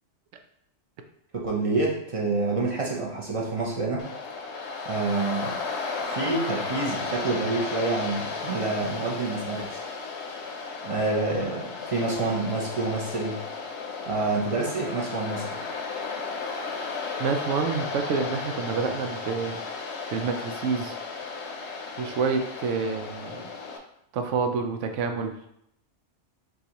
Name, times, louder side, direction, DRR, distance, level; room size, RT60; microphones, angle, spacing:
voice 1, 1.3-4.1 4.8-5.6 6.0-9.8 10.8-13.4 14.0-15.6, right 3 dB, 35° right, -3 dB, 0.6 m, -28 dB
Waves surf, 4.0-23.8, left 4 dB, 70° left, 0.9 m, -34 dB
voice 2, 17.2-19.6 20.1-21.0 22.0-23.5 24.1-25.4, right 5 dB, 85° right, 5 dB, 0.9 m, -28 dB
6.5 x 2.4 x 2.9 m, 0.74 s
omnidirectional pair, 1.2 m